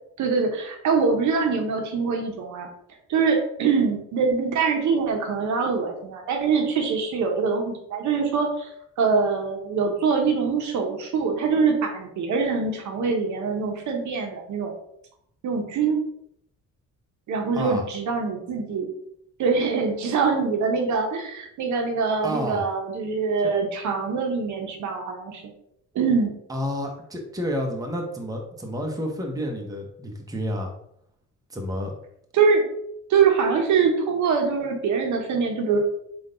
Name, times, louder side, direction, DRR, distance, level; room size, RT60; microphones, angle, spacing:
voice 1, 0.2-2.7 3.1-8.7 9.0-14.7 15.4-16.0 17.3-18.9 19.4-25.4 25.9-26.3 32.3-32.6 33.1-35.8, right 5 dB, 75° right, 3 dB, 0.9 m, -24 dB
voice 2, 22.2-22.6 23.4-23.5 26.5-30.7 31.5-31.9, equal, 10° right, 1 dB, 0.8 m, -30 dB
3.7 x 2.5 x 3.8 m, 0.73 s
cardioid pair, 90°, 30 cm